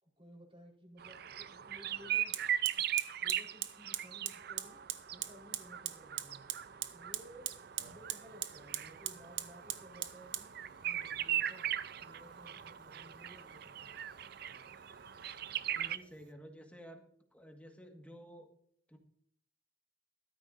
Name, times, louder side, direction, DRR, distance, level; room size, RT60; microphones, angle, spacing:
voice 1, 0.0-2.9 3.2-4.8 5.1-6.5 6.9-7.5 7.9-10.5 10.8-11.7 12.0-14.0, equal, 30° right, -1 dB, 4.2 m, -57 dB
sound 1, 1.0-16.0, right 11 dB, 55° right, 0.5 m, -39 dB
Fire, 1.3-1.4 2.3-16.3, right 12 dB, 90° right, 0.9 m, -44 dB
voice 2, 15.7-17.0 17.3-18.5 18.9-19.0, equal, 10° left, 3 dB, 1.6 m, -52 dB
14.5 x 13.0 x 2.6 m, 0.64 s
head